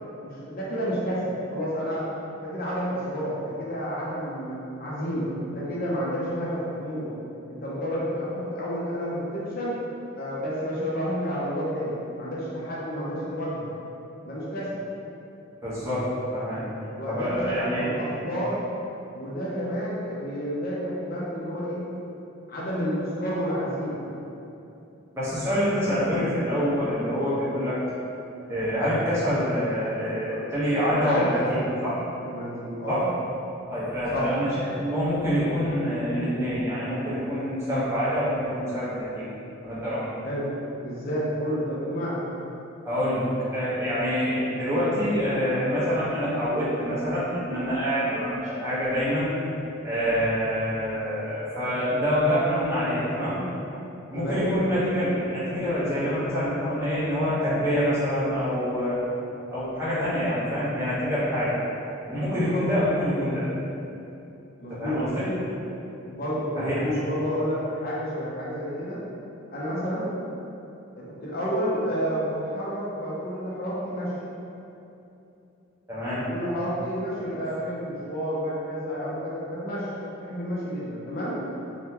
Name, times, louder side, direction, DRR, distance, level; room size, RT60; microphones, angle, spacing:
voice 1, 0.2-2.1 2.4-7.1 7.5-9.7 10.1-13.7 14.2-14.8 17.0-17.6 17.8-18.6 19.1-21.8 22.5-24.0 30.9-31.8 32.2-33.1 34.1-34.3 40.2-40.5 40.8-42.2 54.1-54.5 62.5-62.6 64.6-65.0 66.1-69.0 69.5-70.1 71.0-74.1 76.0-79.9 80.2-81.4, equal, 45° left, -7 dB, 0.5 m, -30 dB
voice 2, 15.6-16.6 17.1-17.9 25.1-27.8 28.5-32.0 32.9-33.1 33.7-39.3 39.6-40.1 42.8-49.3 49.8-53.4 54.1-59.0 59.5-61.6 62.1-63.5 64.7-65.3 66.5-66.8 75.9-76.3 77.2-77.3, equal, 15° right, -11 dB, 0.8 m, -26 dB
3.6 x 2.1 x 2.8 m, 2.9 s
head